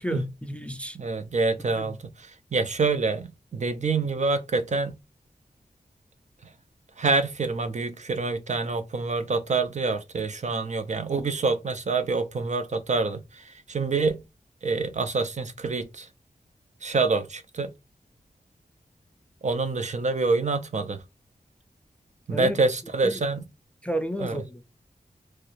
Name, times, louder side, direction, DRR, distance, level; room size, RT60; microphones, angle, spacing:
voice 1, 0.0-1.0 1.8-2.0 22.3-22.6 23.0-23.2 23.8-24.6, equal, 10° left, 0.3 m, -31 dB
voice 2, 0.9-5.0 6.4-6.5 7.0-14.2 14.6-16.1 16.8-17.7 19.4-21.0 22.3-23.4 24.2-24.4, right 3 dB, 50° right, 0.5 m, -26 dB
3.0 x 2.4 x 3.0 m
wide cardioid pair, 100°, 15 cm